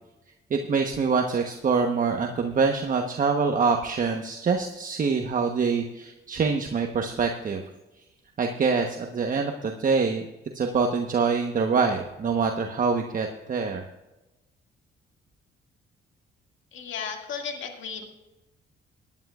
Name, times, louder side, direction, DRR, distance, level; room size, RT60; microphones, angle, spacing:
voice 1, 0.5-7.6 8.4-10.3 10.5-13.8, right 5 dB, 45° right, 3 dB, 1.1 m, -25 dB
voice 2, 16.7-18.0, left 6 dB, 75° left, 3 dB, 2.1 m, -34 dB
19.5 x 10.5 x 2.4 m, 1.0 s
cardioid pair, 90°, 20 cm